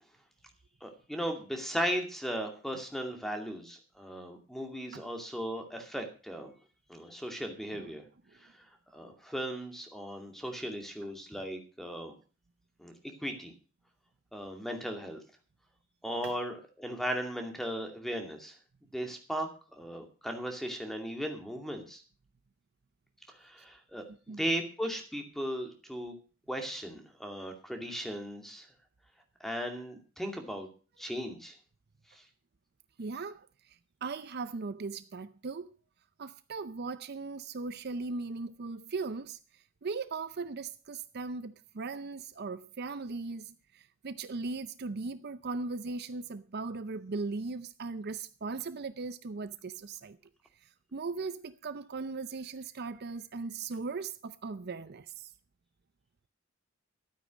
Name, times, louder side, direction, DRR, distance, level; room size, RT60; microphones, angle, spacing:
voice 1, 0.8-6.5 6.9-8.0 8.9-12.1 12.8-12.9 13.2-13.5 14.3-15.2 16.0-18.6 18.9-22.0 23.4-26.1 26.5-28.7 29.4-30.7 31.0-31.6 32.1-32.2, equal, ahead, 2.4 m, -37 dB
voice 2, 24.1-24.4 33.0-35.8 36.2-50.2 50.6-55.3, right 4 dB, 55° right, 0.6 m, -38 dB
12.5 x 9.1 x 6.2 m
head